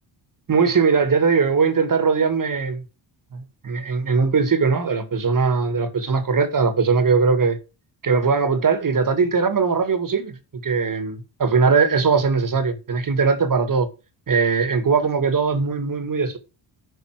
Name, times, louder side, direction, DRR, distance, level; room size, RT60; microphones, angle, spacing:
voice 1, 0.5-2.8 3.3-7.6 8.0-13.9 14.3-16.4, right 5 dB, 45° right, 2.0 m, -20 dB
11.0 x 5.1 x 4.7 m
cardioid pair, 90°, 46 cm